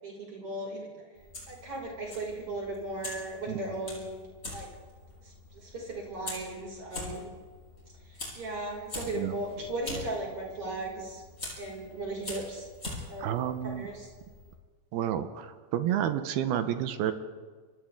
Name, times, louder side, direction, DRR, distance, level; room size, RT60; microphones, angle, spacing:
voice 1, 0.0-0.9 1.5-4.1 4.5-4.7 5.2-7.3 8.1-11.2 11.6-12.6 13.1-14.1, right 2 dB, 35° right, -2 dB, 6.5 m, -37 dB
Fire, 1.1-14.5, left 2 dB, 15° left, 8.0 m, -44 dB
voice 2, 13.2-13.9 14.9-17.1, right 10 dB, 75° right, 9 dB, 2.8 m, -30 dB
30.0 x 24.5 x 3.7 m, 1.5 s
omnidirectional pair, 4.7 m